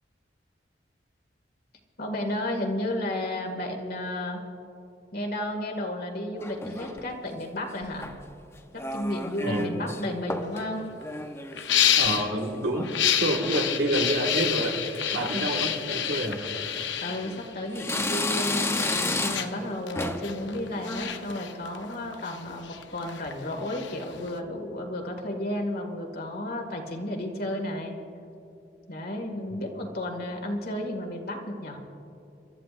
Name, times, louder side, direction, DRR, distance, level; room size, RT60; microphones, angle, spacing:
voice 1, 2.0-4.4 5.1-8.1 8.7-10.8 15.3-15.6 17.0-27.9 28.9-31.9, left 1 dB, 55° left, 3 dB, 2.0 m, -33 dB
sound 1, 6.4-7.1 7.8-8.3 8.8-10.0 10.3-10.6 11.0-12.9 13.2-13.7 14.3-14.6 14.9-15.0 16.0-16.1 16.8-17.4 17.7-19.6 20.0-20.3 20.7-21.0, left 2 dB, 15° left, 0.7 m, -32 dB
sound 2, 10.4-10.5 10.8-11.0 11.5-12.4 12.8-18.1 18.6-24.4, left 9 dB, 70° left, 0.8 m, -29 dB
voice 2, 12.0-14.8 15.1-16.4 29.5-29.6, right 1 dB, 70° right, 1 dB, 1.8 m, -28 dB
27.0 x 13.5 x 2.5 m, 2.8 s
head